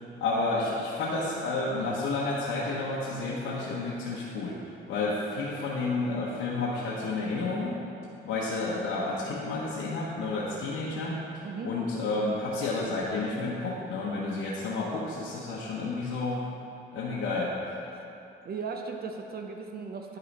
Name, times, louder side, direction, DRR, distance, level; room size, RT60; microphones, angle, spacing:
voice 1, 0.2-4.6 4.9-7.7 8.2-11.2 11.6-16.4 16.9-17.8, left 3 dB, 80° left, -6 dB, 1.1 m, -30 dB
voice 2, 18.4-20.2, right 5 dB, 50° right, 3 dB, 0.7 m, -37 dB
10.5 x 5.6 x 4.1 m, 2.7 s
cardioid pair, 90°, 20 cm